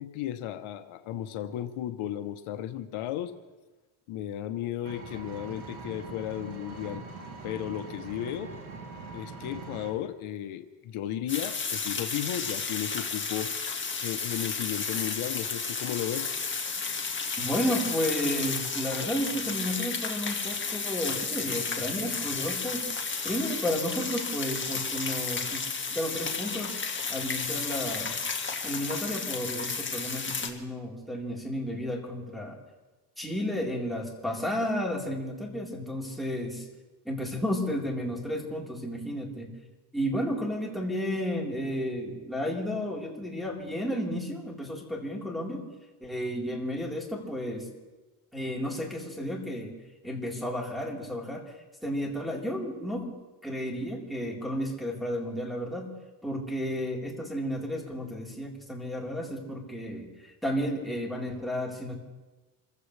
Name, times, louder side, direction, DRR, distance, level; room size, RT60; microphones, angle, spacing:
voice 1, 0.0-3.3 4.1-7.0 7.4-8.5 9.1-13.5 14.0-16.3, left 12 dB, 80° left, 9 dB, 1.0 m, -34 dB
Engine, 4.8-9.9, right 4 dB, 90° right, 3.2 m, -42 dB
sound 1, 11.3-30.5, left 5 dB, 25° left, 2.0 m, -32 dB
voice 2, 17.4-22.8 23.2-25.6 25.9-26.8 27.1-28.2 28.6-32.6 33.2-36.6 37.0-39.5 39.9-45.7 46.0-47.7 48.3-49.7 50.0-51.4 51.8-53.2 53.4-55.9 56.2-61.9, equal, ahead, -4 dB, 4.0 m, -32 dB
28.0 x 15.5 x 3.3 m, 1.2 s
cardioid pair, 110°, 49 cm